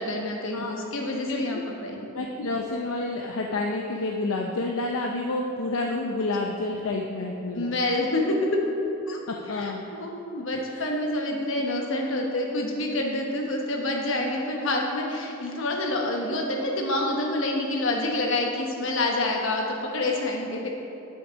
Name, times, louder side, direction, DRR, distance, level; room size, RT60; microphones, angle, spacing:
voice 1, 0.0-2.1 7.5-8.4 9.1-9.2 9.5-20.7, left 2 dB, 65° left, 0 dB, 1.2 m, -27 dB
voice 2, 1.3-1.6 2.1-7.8 9.3-9.8 10.5-10.8, left 2 dB, 85° left, 1 dB, 0.6 m, -29 dB
8.0 x 6.5 x 5.8 m, 2.9 s
head